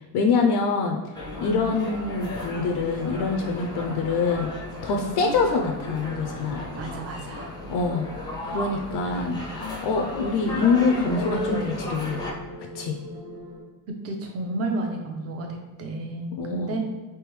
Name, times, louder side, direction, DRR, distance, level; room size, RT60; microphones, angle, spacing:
voice 1, 0.1-1.0 1.4-4.5 4.8-6.7 7.7-12.3 12.6-13.0 16.4-16.8, left 4 dB, 60° left, 2 dB, 0.5 m, -25 dB
sound 1, 1.1-12.3, left 1 dB, 10° left, 0.5 m, -35 dB
voice 2, 1.4-1.8 3.8-4.0 5.0-5.4 6.8-7.5 14.0-16.8, right 2 dB, 35° right, 3 dB, 0.6 m, -32 dB
sound 2, 6.3-13.6, left 2 dB, 60° right, 1.3 m, -39 dB
3.4 x 3.0 x 3.1 m, 1.2 s
cardioid pair, 130°, 45 cm